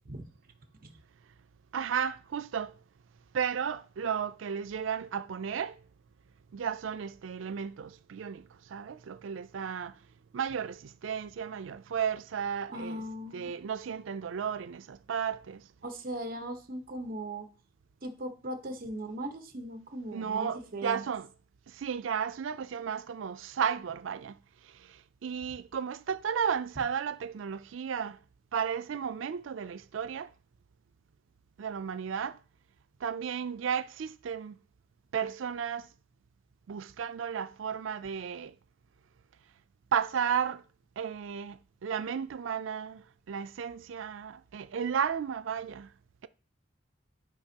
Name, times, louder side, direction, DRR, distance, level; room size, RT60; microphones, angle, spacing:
voice 1, 1.7-2.7 3.3-5.8 6.5-9.9 10.3-13.0 13.3-15.6 20.1-21.3 21.7-24.4 24.8-28.2 28.5-30.3 31.6-32.4 33.0-34.6 35.1-35.9 36.7-38.5 39.9-40.6 41.0-45.9, right 7 dB, 85° right, 0.4 m, -34 dB
voice 2, 12.7-13.5 15.8-17.4 18.0-21.0, right 1 dB, 50° right, 1.1 m, -38 dB
12.0 x 5.2 x 2.9 m
head